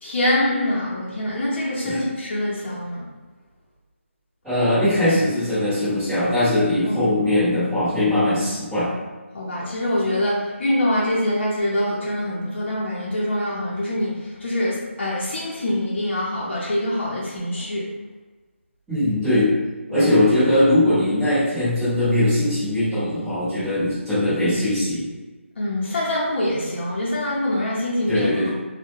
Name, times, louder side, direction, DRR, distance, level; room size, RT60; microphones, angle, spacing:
voice 1, 0.0-3.0 6.8-7.1 9.3-17.9 19.9-20.1 25.6-28.5, left 1 dB, 55° left, -6 dB, 0.6 m, -24 dB
voice 2, 4.4-8.9 18.9-19.5 19.9-25.0 28.1-28.5, left 1 dB, 5° right, -18 dB, 0.8 m, -20 dB
2.2 x 2.1 x 3.0 m, 1.2 s
figure-of-eight pair, 165°, 7 cm